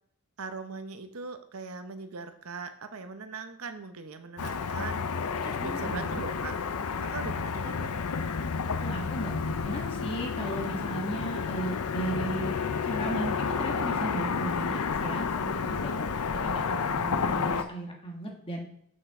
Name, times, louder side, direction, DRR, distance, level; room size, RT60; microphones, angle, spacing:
voice 1, 0.4-5.0 5.3-6.5 7.0-7.9, right 4 dB, 70° right, 9 dB, 0.8 m, -40 dB
Car passing by / Traffic noise roadway noise, 4.4-17.6, left 5 dB, 85° left, 0.6 m, -30 dB
voice 2, 5.6-6.2 7.6-7.8 8.4-12.5 12.8-18.7, right 1 dB, 25° left, 0 dB, 1.4 m, -36 dB
6.3 x 5.7 x 4.8 m, 0.68 s
head